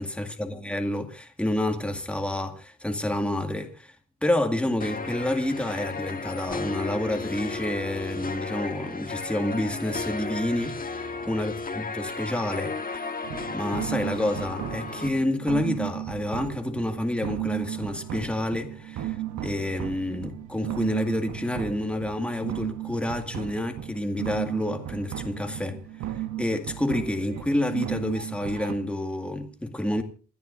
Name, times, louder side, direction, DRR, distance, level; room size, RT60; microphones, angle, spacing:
voice 1, 0.0-3.9 4.2-13.1 13.5-19.2 19.4-25.8 26.1-30.0, left 1 dB, 5° left, 2.0 m, -29 dB
sound 1, 4.8-15.1, left 4 dB, 30° left, 1.5 m, -34 dB
sound 2, 13.2-28.7, right 12 dB, 70° right, 1.0 m, -35 dB
28.0 x 10.5 x 2.6 m
cardioid pair, 90°, 30 cm